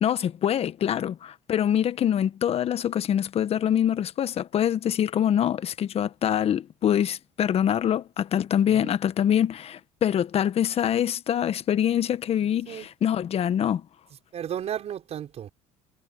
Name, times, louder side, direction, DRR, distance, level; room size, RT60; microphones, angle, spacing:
voice 1, 0.0-13.8, left 10 dB, 45° left, 1.1 m, -24 dB
voice 2, 8.6-9.0 12.4-12.9 14.3-15.5, right 9 dB, 50° right, 5.8 m, -34 dB
supercardioid pair, 95°, 14 cm